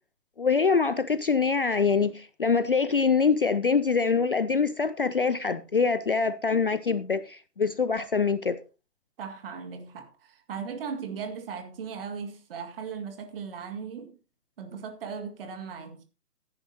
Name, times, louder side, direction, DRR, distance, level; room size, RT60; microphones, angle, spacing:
voice 1, 0.4-8.6, left 5 dB, 40° left, 0.5 m, -24 dB
voice 2, 9.2-14.2 14.6-16.0, right 6 dB, 35° right, 1.9 m, -38 dB
15.5 x 10.0 x 2.8 m
figure-of-eight pair, 130°, 46 cm